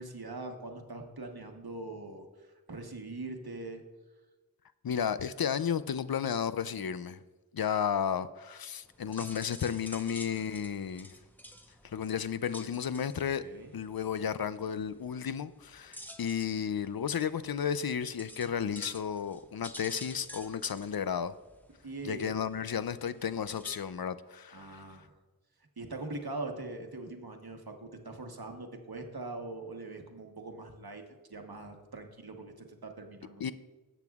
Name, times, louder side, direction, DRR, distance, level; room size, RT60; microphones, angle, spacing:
voice 1, 0.0-3.8 13.4-13.7 21.8-22.4 24.5-25.2 25.8-31.0 31.3-33.4, right 2 dB, 80° right, 1.2 m, -42 dB
voice 2, 4.8-7.2 7.5-11.1 11.8-13.4 13.7-21.3 22.0-24.8 33.4-33.5, left 8 dB, 75° left, 0.5 m, -33 dB
sound 1, 8.8-24.0, equal, 5° left, 0.8 m, -51 dB
17.5 x 8.1 x 2.4 m
wide cardioid pair, 40°, 37 cm